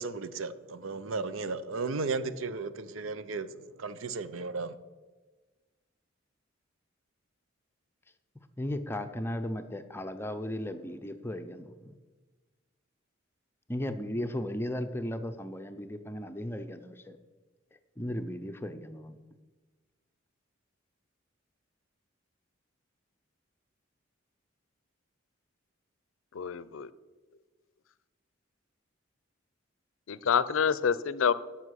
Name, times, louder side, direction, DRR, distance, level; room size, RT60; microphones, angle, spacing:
voice 1, 0.0-4.8, right 4 dB, 90° right, 0.6 m, -35 dB
voice 2, 8.6-11.9 13.7-17.2 18.0-19.2, left 1 dB, 10° left, 0.6 m, -36 dB
voice 3, 26.3-26.9 30.1-31.3, left 7 dB, 90° left, 0.5 m, -27 dB
12.5 x 5.8 x 6.4 m
head